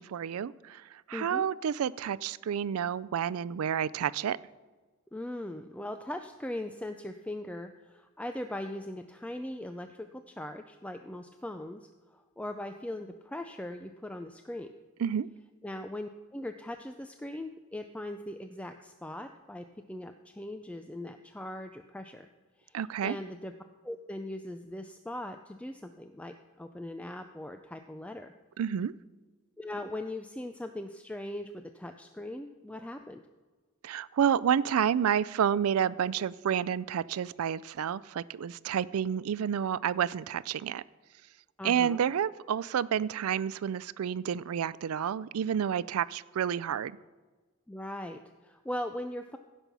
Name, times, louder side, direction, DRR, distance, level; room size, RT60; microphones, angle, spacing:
voice 1, 0.0-4.4 15.0-15.3 22.7-23.2 28.6-28.9 33.8-40.8 41.6-47.0, right 8 dB, 85° right, 19 dB, 0.4 m, -30 dB
voice 2, 1.1-1.5 5.1-14.7 15.6-22.3 22.6-23.5 23.8-28.3 29.6-33.2 41.6-42.0 47.7-49.4, left 1 dB, 5° left, 7 dB, 0.4 m, -40 dB
16.0 x 5.4 x 6.1 m, 1.4 s
head